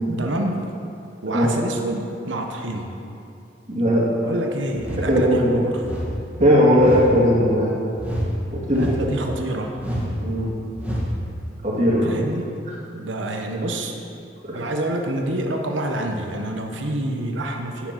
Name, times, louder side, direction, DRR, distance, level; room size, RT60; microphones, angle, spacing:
voice 1, 0.2-0.6 1.2-2.9 4.2-5.9 8.7-9.8 12.0-12.6 12.9-14.0 14.5-17.9, right 1 dB, 90° right, 3 dB, 1.1 m, -27 dB
voice 2, 3.7-4.1 5.1-5.6 6.4-7.7 8.5-9.1 10.2-10.5 11.6-12.2 14.4-14.6, equal, 40° right, -5 dB, 2.2 m, -18 dB
sound 1, 4.7-5.1 5.8-6.1 6.8-7.1 8.0-8.3 8.7-9.1 9.8-10.1 10.7-11.1, equal, 5° right, 1.9 m, -28 dB
9.3 x 7.2 x 5.9 m, 2.6 s
head